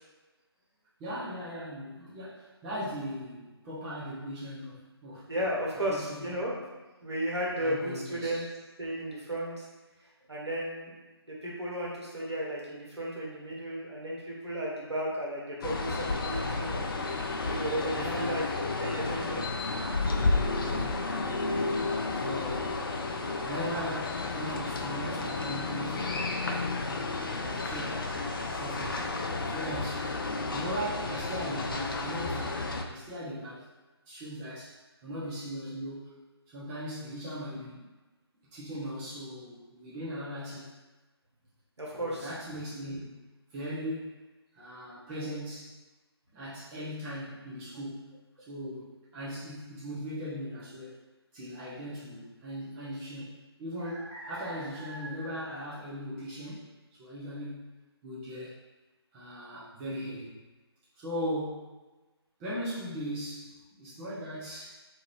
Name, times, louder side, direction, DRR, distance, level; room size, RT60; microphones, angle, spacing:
voice 1, 1.0-5.3 5.7-6.4 7.6-8.3 18.0-18.5 20.6-21.6 22.1-22.7 23.4-27.1 27.4-29.1 29.4-30.1 30.5-32.6 32.9-33.7 34.1-34.8 35.0-36.2 36.5-37.8 38.5-40.7 41.9-43.2 43.5-44.2 44.6-45.7 46.3-48.2 48.5-51.0 51.3-56.7 57.0-57.7 58.0-58.5 59.1-60.4 61.0-61.7 62.4-64.8, equal, 10° right, -9 dB, 0.4 m, -39 dB
voice 2, 5.3-6.5 7.0-8.5 8.8-9.7 10.3-10.9 11.3-16.9 17.4-18.4 18.8-19.5 21.2-21.3 41.8-42.3, equal, 85° right, -5 dB, 1.1 m, -34 dB
sound 1, 15.6-32.8, left 3 dB, 55° left, 0.4 m, -32 dB
2.6 x 2.4 x 3.0 m, 1.2 s
figure-of-eight pair, 150°, 14 cm